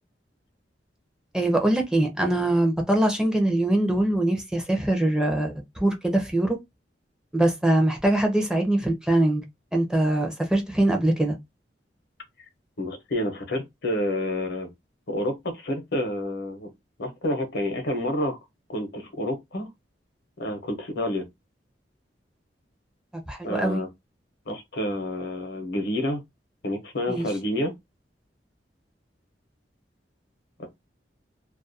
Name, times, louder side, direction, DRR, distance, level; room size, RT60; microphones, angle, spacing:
voice 1, 1.3-6.6 7.3-9.4 9.7-11.3 23.3-23.8 27.1-27.2, right 1 dB, 5° right, 0.5 m, -23 dB
voice 2, 12.8-14.7 15.1-16.7 17.0-18.4 18.7-19.7 20.4-21.2 23.4-23.9 24.5-26.2 26.6-27.7 30.6-30.7, left 1 dB, 65° left, 0.7 m, -29 dB
2.3 x 2.2 x 2.6 m
head